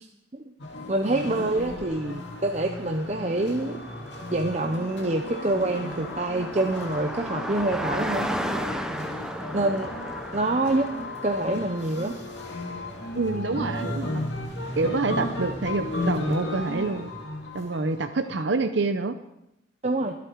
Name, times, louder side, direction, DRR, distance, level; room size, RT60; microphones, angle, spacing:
sound 1, 0.6-18.4, left 2 dB, 65° left, 2.4 m, -35 dB
voice 1, 0.9-3.8 4.3-8.3 9.5-9.9 10.3-10.9 11.2-12.1 19.8-20.1, right 2 dB, 35° right, 4 dB, 0.7 m, -26 dB
Car passing by, 1.5-17.5, equal, 5° right, 0.7 m, -36 dB
voice 2, 13.1-14.2 14.8-17.1 17.5-19.1, right 3 dB, 70° right, 9 dB, 0.7 m, -27 dB
23.0 x 8.5 x 4.6 m, 0.86 s
head